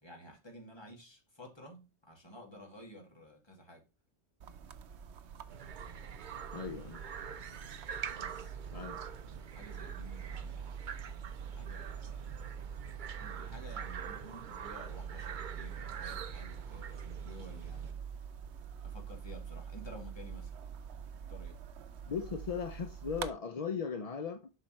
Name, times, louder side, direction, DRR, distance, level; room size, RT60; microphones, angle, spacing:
voice 1, 0.0-3.9 8.1-10.8 11.4-12.6 13.1-18.0 18.8-20.5 21.1-21.6, equal, 25° left, 2.4 m, -53 dB
sound 1, 4.4-23.3, right 7 dB, 85° right, 1.0 m, -45 dB
sound 2, 5.5-17.9, right 7 dB, 55° right, 0.7 m, -46 dB
voice 2, 6.5-7.0 8.7-9.0 22.1-24.5, left 6 dB, 45° left, 0.6 m, -38 dB
7.6 x 5.6 x 3.1 m
omnidirectional pair, 1.1 m